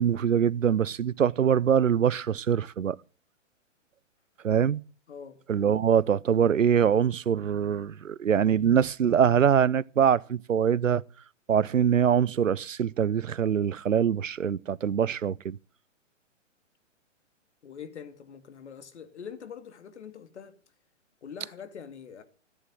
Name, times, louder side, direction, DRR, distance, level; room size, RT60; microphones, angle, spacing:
voice 1, 0.0-3.0 4.4-4.8 5.5-11.0 11.5-15.6, right 8 dB, 85° right, 0.6 m, -23 dB
voice 2, 5.1-5.4 17.6-20.6 21.2-22.2, left 7 dB, 60° left, 2.3 m, -44 dB
14.0 x 10.0 x 7.6 m
figure-of-eight pair, 125°, 38 cm